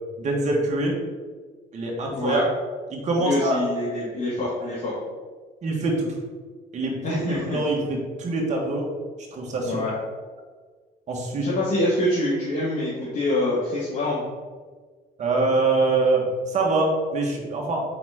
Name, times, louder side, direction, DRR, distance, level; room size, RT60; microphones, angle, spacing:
voice 1, 0.2-0.9 1.7-2.4 2.9-3.6 5.6-6.1 6.7-8.9 9.3-9.8 11.1-11.5 15.2-17.8, right 2 dB, 45° right, -1 dB, 1.5 m, -24 dB
voice 2, 2.1-2.4 3.2-4.9 7.0-7.6 9.7-9.9 11.4-14.2, left 1 dB, 50° left, -8 dB, 1.8 m, -25 dB
5.0 x 4.0 x 5.0 m, 1.5 s
cardioid pair, 110°, 17 cm